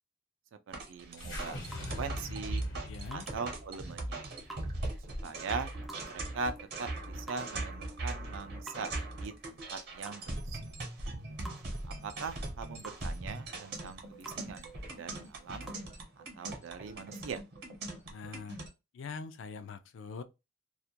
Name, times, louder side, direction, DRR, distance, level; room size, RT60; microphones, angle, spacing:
sound 1, 0.7-18.7, right 2 dB, 55° right, 0.8 m, -40 dB
sound 2, 0.9-15.8, right 2 dB, ahead, 0.3 m, -54 dB
voice 1, 0.9-2.6 3.1-4.3 5.2-5.7 6.1-6.5 6.8-10.6 11.9-15.7 16.4-17.4, right 4 dB, 80° right, 0.4 m, -41 dB
sound 3, 1.2-5.5, left 1 dB, 90° left, 1.0 m, -42 dB
voice 2, 2.8-3.3 18.1-18.6 18.9-20.2, left 5 dB, 75° left, 0.4 m, -43 dB
2.3 x 2.1 x 2.7 m
head